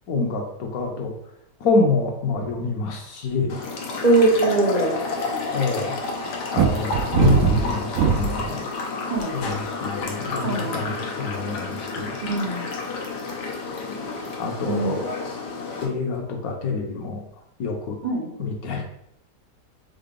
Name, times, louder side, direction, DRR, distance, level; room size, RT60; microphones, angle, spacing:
voice 1, 0.1-1.1 1.6-3.6 5.5-6.0 6.5-8.6 9.3-12.1 14.4-15.1 15.8-17.2 17.6-18.0 18.4-18.9, left 4 dB, 65° left, 2 dB, 1.1 m, -26 dB
sound 1, 3.5-15.9, left 3 dB, 90° left, 1.4 m, -30 dB
voice 2, 4.0-5.0 9.1-9.3 10.4-10.9 12.2-12.7 14.7-15.0 18.0-18.3, right 3 dB, 45° right, -4 dB, 0.5 m, -22 dB
sound 2, 6.6-8.5 9.2-9.6, right 6 dB, 75° right, 1.1 m, -20 dB
3.8 x 3.7 x 3.7 m, 0.75 s
omnidirectional pair, 1.8 m